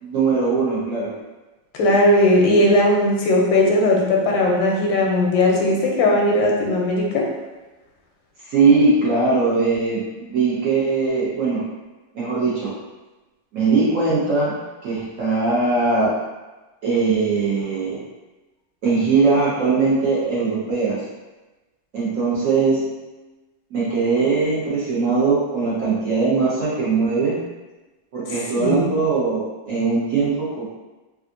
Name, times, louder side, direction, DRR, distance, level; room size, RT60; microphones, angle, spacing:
voice 1, 0.0-1.2 8.4-11.7 12.1-12.8 13.5-14.6 14.8-16.2 16.8-18.0 18.8-21.1 21.9-22.8 23.7-27.4 28.1-30.6, right 4 dB, 60° right, -8 dB, 0.9 m, -20 dB
voice 2, 1.7-7.3 28.6-28.9, left 1 dB, 85° left, -1 dB, 1.3 m, -18 dB
3.4 x 2.4 x 2.5 m, 1.1 s
omnidirectional pair, 2.0 m